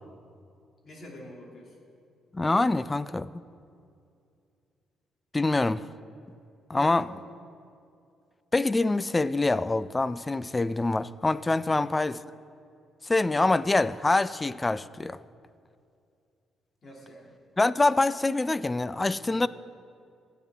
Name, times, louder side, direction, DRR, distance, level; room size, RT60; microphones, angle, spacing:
voice 1, 0.8-1.7 6.7-7.3 11.6-12.0 16.8-17.3, equal, 50° left, 2.8 m, -46 dB
voice 2, 2.3-3.4 5.3-5.9 6.7-7.1 8.5-12.2 13.0-15.2 17.6-19.5, left 2 dB, 20° left, 0.3 m, -25 dB
16.5 x 9.3 x 3.7 m
cardioid pair, 90°, 0 cm